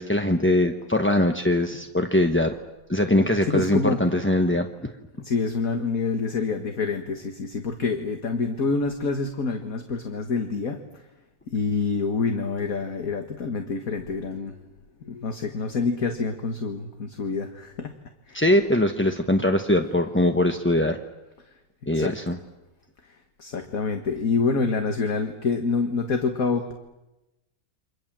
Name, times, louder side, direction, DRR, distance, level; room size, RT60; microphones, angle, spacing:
voice 1, 0.0-2.5 2.9-4.9 18.3-21.0 21.9-22.4, left 1 dB, 10° left, 5 dB, 0.8 m, -22 dB
voice 2, 3.5-4.0 5.2-10.8 11.5-14.6 15.0-17.9 18.3-18.4 21.9-22.1 23.4-26.7, left 4 dB, 50° left, 6 dB, 2.0 m, -27 dB
29.5 x 25.5 x 7.6 m, 1.0 s
omnidirectional pair, 1.9 m